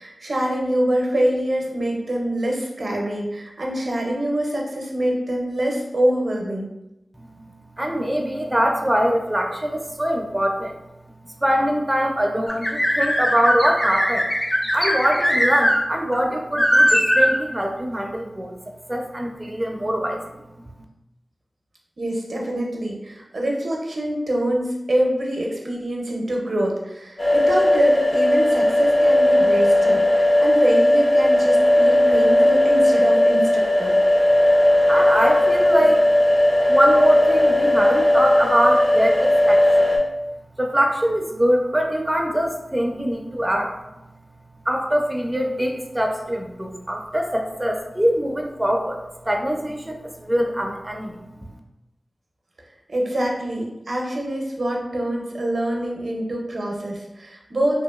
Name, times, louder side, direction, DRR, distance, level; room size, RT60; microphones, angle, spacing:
voice 1, 0.0-6.7 22.0-34.0 52.9-57.8, right 1 dB, 75° right, 0 dB, 0.5 m, -25 dB
voice 2, 7.8-10.7 11.2-14.3 14.7-18.5 18.9-20.7 34.9-36.1 36.7-39.9 40.6-43.7 44.7-51.5, equal, 20° right, 2 dB, 0.4 m, -23 dB
sound 1, 12.5-15.8 16.1-16.2 16.6-17.4, equal, 25° left, 0.6 m, -19 dB
sound 2, 27.2-40.0, left 1 dB, 55° left, 0.8 m, -17 dB
2.8 x 2.5 x 2.3 m, 0.94 s
cardioid pair, 40°, 0 cm